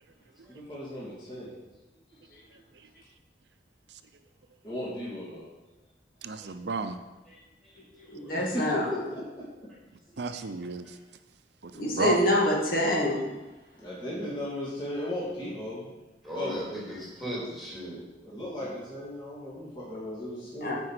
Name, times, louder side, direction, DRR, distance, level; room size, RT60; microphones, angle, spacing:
voice 1, 0.5-1.5 4.6-5.4 8.3-9.5 13.8-15.9 16.3-16.6 18.2-20.8, left 1 dB, 25° left, -8 dB, 2.7 m, -36 dB
voice 2, 6.2-7.0 10.2-11.0 11.6-12.2, right 4 dB, 75° right, 9 dB, 0.6 m, -32 dB
voice 3, 8.1-8.9 11.7-13.2 20.6-20.7, left 1 dB, 55° left, -2 dB, 2.1 m, -26 dB
voice 4, 16.2-18.6, equal, ahead, -7 dB, 3.6 m, -37 dB
8.7 x 5.3 x 7.6 m, 1.1 s
head